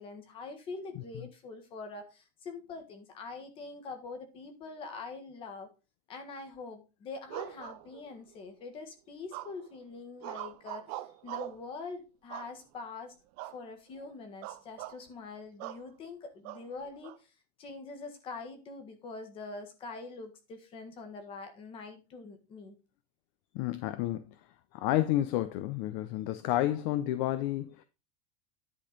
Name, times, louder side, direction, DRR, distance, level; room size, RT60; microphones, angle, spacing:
voice 1, 0.0-5.7 6.1-13.1 13.4-17.1 17.6-22.7, left 4 dB, 25° left, 1.6 m, -44 dB
sound 1, 7.3-8.3 9.3-9.8 10.2-11.7 12.3-12.9 13.4-13.6 13.9-14.1 14.4-15.0 15.6-15.9 16.4-17.2, right 16 dB, 45° right, 0.6 m, -42 dB
voice 2, 23.5-24.4 24.7-27.8, left 14 dB, 45° left, 0.6 m, -30 dB
10.5 x 4.3 x 5.1 m
supercardioid pair, 175°, 21 cm